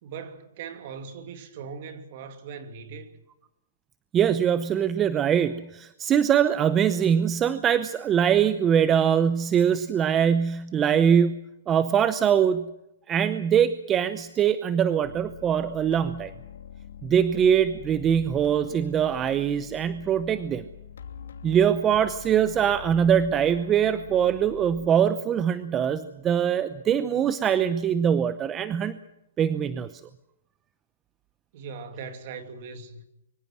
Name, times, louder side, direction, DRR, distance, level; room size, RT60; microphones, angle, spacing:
voice 1, 0.0-3.2 31.5-33.0, right 5 dB, 45° right, 2.8 m, -40 dB
voice 2, 4.1-11.4 11.7-12.7 13.1-16.3 17.0-20.6 21.4-29.0 29.4-29.9, right 8 dB, 15° right, 0.7 m, -23 dB
sound 1, 15.0-24.9, left 9 dB, 80° left, 2.8 m, -44 dB
24.5 x 24.0 x 6.2 m
hypercardioid pair, 160°, 0 cm